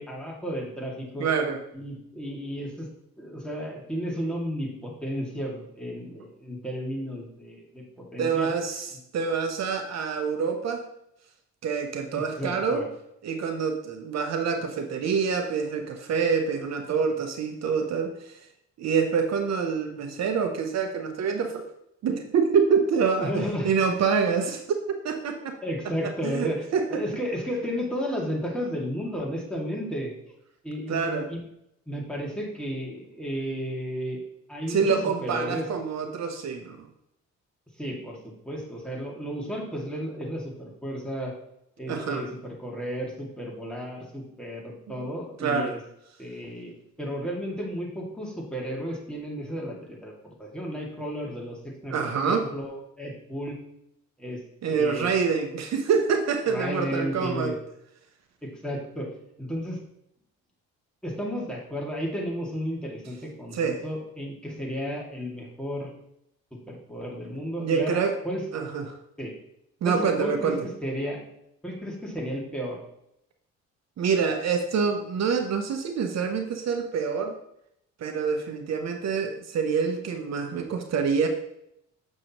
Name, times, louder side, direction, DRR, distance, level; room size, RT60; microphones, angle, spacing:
voice 1, 0.0-1.3 1.7-2.9 3.2-7.8 8.1-8.5 12.1-12.9 23.2-23.7 25.6-26.6 26.9-30.3 30.6-31.4 31.9-34.2 34.5-35.7 37.8-38.2 38.4-41.3 41.8-45.8 46.2-50.1 50.4-52.0 52.3-53.6 54.2-54.4 54.7-55.2 56.5-57.5 58.4-59.1 59.4-59.8 61.0-65.9 66.7-68.4 69.2-69.3 69.8-70.5 70.8-71.2 71.6-72.8, equal, 5° left, -3 dB, 2.2 m, -33 dB
voice 2, 1.2-1.6 8.2-8.9 9.1-10.9 11.6-12.8 13.2-18.4 18.8-21.7 22.0-24.6 25.0-25.6 26.0-27.0 30.9-31.3 34.7-36.9 41.9-42.3 45.0-45.1 45.4-45.8 51.9-52.5 54.6-57.6 63.5-63.8 67.6-68.1 68.5-69.0 69.8-70.7 74.0-77.3 78.0-81.3, right 5 dB, 60° right, 5 dB, 0.8 m, -26 dB
7.9 x 6.4 x 3.0 m, 0.78 s
cardioid pair, 90°, 30 cm